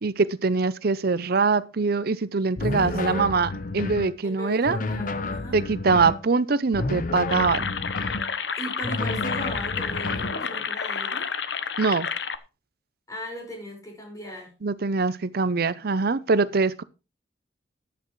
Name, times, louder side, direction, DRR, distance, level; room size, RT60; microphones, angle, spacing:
voice 1, 0.0-4.8 5.5-7.7 11.8-12.1 14.6-16.8, right 4 dB, 55° right, 0.6 m, -23 dB
sound 1, 2.6-4.1 4.6-6.2 6.7-8.3 8.8-10.4, left 2 dB, 45° left, 0.7 m, -30 dB
voice 2, 2.8-3.1 4.2-5.6 8.5-11.3 13.1-14.5, equal, 20° left, 5.4 m, -38 dB
sound 2, 7.3-12.4, left 6 dB, 70° left, 0.9 m, -30 dB
14.0 x 10.5 x 3.1 m
head